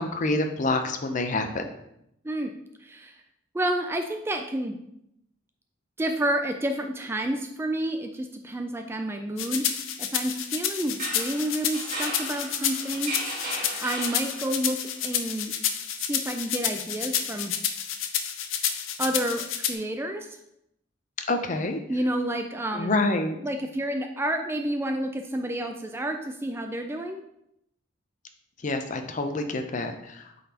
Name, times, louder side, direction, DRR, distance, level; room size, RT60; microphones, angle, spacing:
voice 1, 0.0-1.7 21.3-21.8 22.7-23.4 28.6-30.3, left 2 dB, 40° left, 6 dB, 0.6 m, -27 dB
voice 2, 2.8-3.2 3.5-4.8 6.0-9.7 10.0-14.8 15.0-15.5 16.1-17.6 19.0-20.3 21.9-23.0 23.4-27.2, right 1 dB, 10° right, 5 dB, 0.3 m, -30 dB
sound 1, 9.4-19.7, left 9 dB, 85° left, 0.6 m, -29 dB
sound 2, 10.8-14.7, right 1 dB, 40° right, 1.7 m, -36 dB
8.3 x 4.0 x 2.9 m, 0.79 s
head